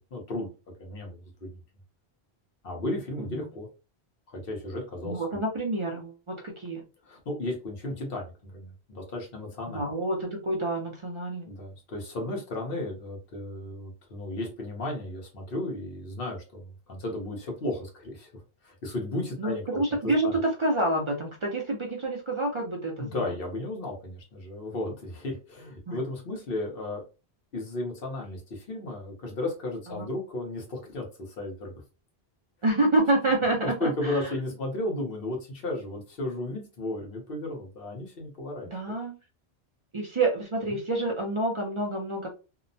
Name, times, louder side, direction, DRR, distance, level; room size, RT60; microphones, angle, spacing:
voice 1, 0.1-0.5 0.8-1.6 2.6-3.7 4.3-5.4 7.0-9.8 11.4-18.3 18.6-20.3 23.0-27.0 27.5-31.8 33.6-38.9, left 1 dB, 60° left, 0 dB, 1.1 m, -34 dB
voice 2, 5.0-6.8 9.7-11.5 19.4-23.2 25.9-26.0 30.0-30.1 32.6-34.2 38.7-39.1 39.9-42.3, right 2 dB, 40° right, 0 dB, 0.5 m, -28 dB
2.8 x 2.1 x 2.6 m, 0.31 s
omnidirectional pair, 1.1 m